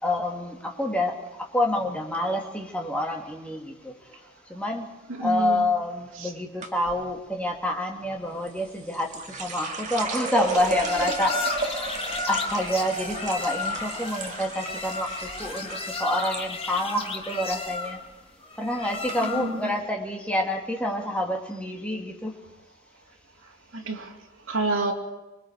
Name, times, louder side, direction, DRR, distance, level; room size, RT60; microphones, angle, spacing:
voice 1, 0.0-3.9 4.5-4.9 5.2-18.0 18.6-22.4, left 1 dB, 5° left, 0 dB, 2.1 m, -28 dB
voice 2, 5.1-5.6 6.2-6.3 19.4-19.7 23.7-24.1 24.5-24.9, right 2 dB, 75° right, 0 dB, 2.7 m, -28 dB
sound 1, 6.6-7.0 8.5-16.4 16.7-17.3 17.6-18.0 18.6-18.7 19.1-19.2, right 3 dB, 35° right, 2.0 m, -34 dB
sound 2, 10.5-19.7, left 4 dB, 25° left, 1.4 m, -33 dB
26.0 x 22.0 x 4.7 m, 1.0 s
head